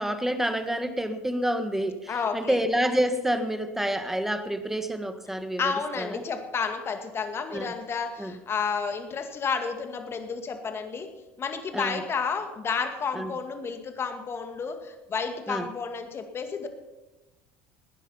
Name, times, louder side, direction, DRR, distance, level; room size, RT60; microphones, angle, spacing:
voice 1, 0.0-5.7 6.0-6.2 7.5-7.7 8.2-8.3 11.7-12.0 13.1-13.3 15.5-15.7, right 1 dB, 5° right, 9 dB, 1.6 m, -28 dB
voice 2, 2.1-2.6 5.6-11.1 11.4-16.7, left 5 dB, 35° left, 6 dB, 2.0 m, -31 dB
18.5 x 10.0 x 5.7 m, 1.1 s
hypercardioid pair, 75°, 7 cm